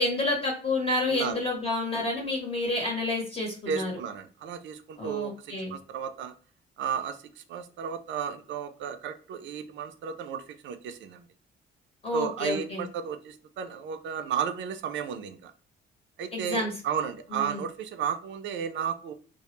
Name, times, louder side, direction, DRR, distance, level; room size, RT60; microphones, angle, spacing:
voice 1, 0.0-3.9 5.0-5.7 12.0-12.8 16.3-16.7 17.3-17.6, left 2 dB, 30° left, -1 dB, 0.8 m, -29 dB
voice 2, 1.1-1.4 3.7-6.3 6.8-11.2 12.1-15.5 16.2-19.1, right 7 dB, 70° right, 8 dB, 0.4 m, -33 dB
2.1 x 2.0 x 2.9 m, 0.42 s
cardioid pair, 90°, 20 cm